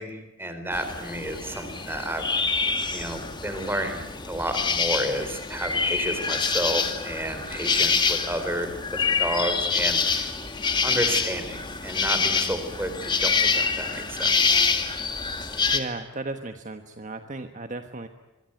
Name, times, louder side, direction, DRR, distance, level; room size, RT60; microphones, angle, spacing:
voice 1, 0.0-2.3 2.6-10.3 10.8-14.6, right 1 dB, 10° right, 8 dB, 4.0 m, -31 dB
sound 1, 0.7-15.8, left 5 dB, 20° left, 2.0 m, -26 dB
voice 2, 15.7-18.1, right 2 dB, 35° right, 7 dB, 1.3 m, -35 dB
25.5 x 22.5 x 9.2 m, 1.0 s
head